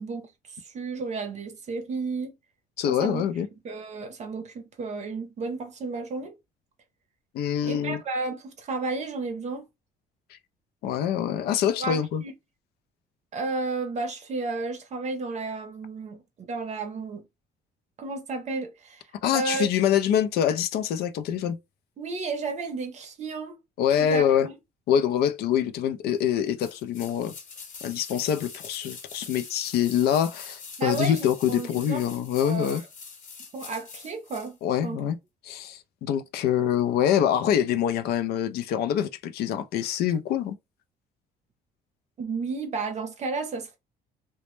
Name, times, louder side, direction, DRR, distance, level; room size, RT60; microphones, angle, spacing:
voice 1, 0.0-2.3 2.9-3.3 3.6-6.3 7.7-9.6 11.8-12.3 13.3-17.2 18.0-19.0 19.3-19.7 22.0-23.6 24.0-24.5 30.8-32.0 32.4-32.8 33.5-34.6 34.8-35.0 42.2-43.8, right 3 dB, 45° right, 0.6 m, -32 dB
voice 2, 2.8-3.5 7.3-8.0 10.8-12.2 19.2-21.6 23.8-24.5 24.9-27.3 27.8-32.8 34.6-35.2 35.4-40.6, left 9 dB, 70° left, 0.4 m, -25 dB
sound 1, 26.6-34.5 34.8-34.9, left 5 dB, 50° left, 0.8 m, -43 dB
2.1 x 2.0 x 3.0 m
cardioid pair, 110°, 17 cm